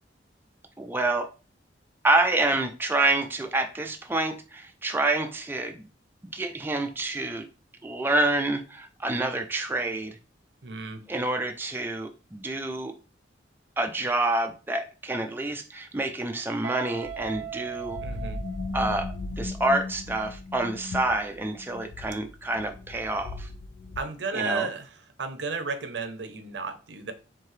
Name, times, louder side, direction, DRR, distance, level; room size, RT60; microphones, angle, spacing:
voice 1, 0.8-1.3 2.0-5.9 6.2-7.5 7.8-10.2 11.1-12.9 13.8-18.0 18.7-23.5 24.3-24.7, right 2 dB, 10° right, 5 dB, 0.4 m, -27 dB
voice 2, 10.6-11.0 18.0-18.4 24.0-24.9 25.2-27.1, right 4 dB, 70° right, 9 dB, 0.7 m, -33 dB
Guitar, 16.6-19.5, right 9 dB, 85° right, 0.3 m, -39 dB
sound 1, 17.0-24.0, left 3 dB, 90° left, 0.5 m, -37 dB
4.6 x 3.6 x 3.2 m, 0.34 s
head